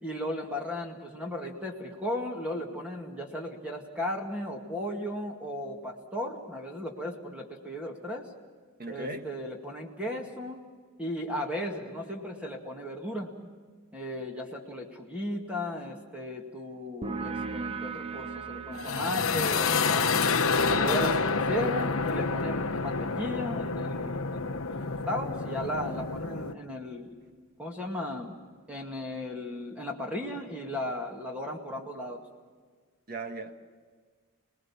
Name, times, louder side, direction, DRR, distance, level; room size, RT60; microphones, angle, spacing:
voice 1, 0.0-8.3 8.9-10.6 11.0-13.3 13.9-20.1 20.8-24.8 25.1-27.1 27.6-28.4 28.7-32.2, left 1 dB, 5° right, 0 dB, 2.1 m, -36 dB
voice 2, 8.8-9.3 20.7-21.3 33.1-33.5, right 2 dB, 40° right, 6 dB, 1.5 m, -37 dB
sound 1, 17.0-24.3, right 4 dB, 25° right, 0.7 m, -41 dB
sound 2, 18.7-26.5, left 4 dB, 65° left, 1.0 m, -28 dB
28.5 x 20.0 x 7.2 m, 1.5 s
head